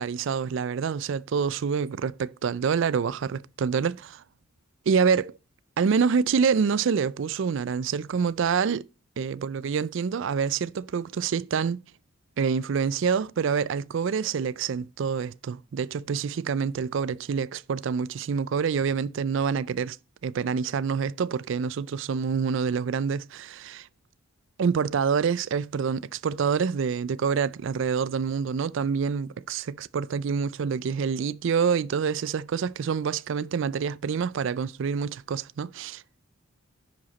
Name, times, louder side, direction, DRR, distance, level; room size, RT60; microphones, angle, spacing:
voice 1, 0.0-4.2 4.9-5.3 5.8-8.9 9.2-11.8 12.4-20.0 20.2-23.9 24.6-36.0, right 6 dB, 60° right, 0.4 m, -27 dB
10.5 x 5.0 x 4.1 m
head